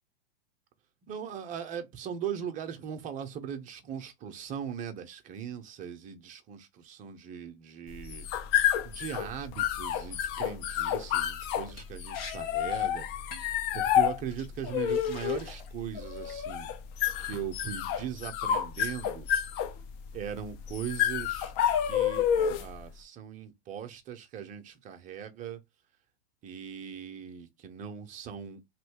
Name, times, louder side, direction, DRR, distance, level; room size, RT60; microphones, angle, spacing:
voice 1, 1.0-8.3 8.8-13.1 13.7-16.7 17.2-19.3 20.1-21.5 21.8-25.6 26.4-28.6, right 8 dB, 25° right, 0.7 m, -39 dB
sound 1, 7.9-22.8, left 10 dB, 35° left, 0.6 m, -30 dB
Liquid, 11.8-11.9 12.1-12.4 12.6-12.9 13.3-13.6 14.3-14.5 14.9-15.8 16.2-16.6, left 5 dB, 75° left, 1.5 m, -45 dB
3.1 x 2.6 x 3.5 m
hypercardioid pair, 110°, 29 cm